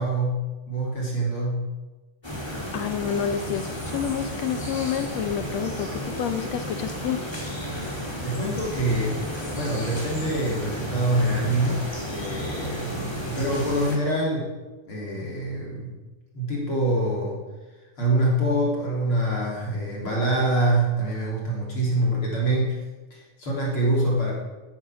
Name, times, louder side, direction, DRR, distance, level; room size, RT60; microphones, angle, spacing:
voice 1, 0.0-1.7 7.6-9.2 9.5-14.5 14.9-16.0 16.3-17.4 18.0-22.8 23.1-24.3, right 1 dB, 40° left, -4 dB, 4.0 m, -25 dB
sound 1, 2.2-14.0, equal, 10° left, 2.5 m, -33 dB
voice 2, 2.7-5.9 6.2-7.2, left 8 dB, 70° left, 8 dB, 1.7 m, -28 dB
15.0 x 11.0 x 6.2 m, 1.2 s
omnidirectional pair, 3.7 m